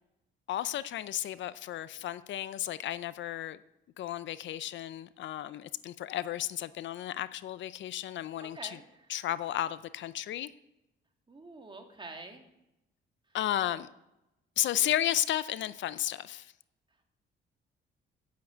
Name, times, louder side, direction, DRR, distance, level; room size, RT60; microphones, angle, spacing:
voice 1, 0.5-3.6 4.0-8.8 9.1-10.5 13.3-13.9 14.6-16.5, left 12 dB, 70° left, 16 dB, 0.5 m, -33 dB
voice 2, 8.4-8.9 11.3-12.5 13.6-13.8, right 3 dB, 25° right, 4 dB, 2.2 m, -46 dB
8.5 x 7.3 x 8.7 m, 0.92 s
cardioid pair, 90°, 20 cm